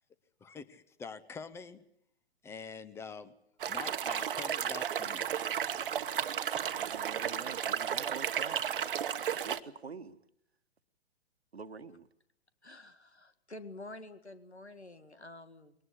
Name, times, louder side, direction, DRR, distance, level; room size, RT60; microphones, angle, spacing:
voice 1, 0.4-1.8 2.4-3.3 3.7-5.3, left 5 dB, 10° left, 0.9 m, -45 dB
sound 1, 3.6-9.6, right 9 dB, 55° right, 1.2 m, -33 dB
voice 2, 6.6-10.2 11.5-12.1, right 5 dB, 75° right, 1.4 m, -47 dB
voice 3, 12.6-15.8, left 2 dB, 85° left, 1.9 m, -49 dB
22.0 x 19.0 x 9.6 m
figure-of-eight pair, 120°, 32 cm